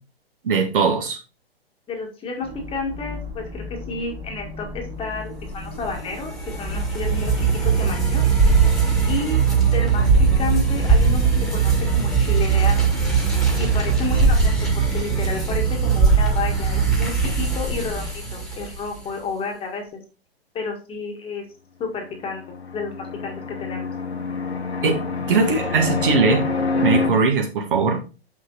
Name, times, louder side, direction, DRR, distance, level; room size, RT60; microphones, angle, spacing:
voice 1, 0.4-1.2 24.8-25.0 25.3-28.0, right 4 dB, 55° right, 3 dB, 2.0 m, -20 dB
voice 2, 1.9-8.2 9.1-13.0 13.6-20.0 20.5-21.4 21.8-23.9, left 4 dB, 15° left, 2 dB, 1.7 m, -31 dB
sound 1, 2.4-18.1, left 3 dB, 35° right, 2.7 m, -36 dB
sound 2, 5.6-19.0, right 5 dB, ahead, 1.9 m, -20 dB
Fixed-wing aircraft airplane, 22.2-27.1, left 4 dB, 80° left, 1.4 m, -26 dB
6.3 x 6.0 x 4.0 m, 0.33 s
figure-of-eight pair, 115°, 31 cm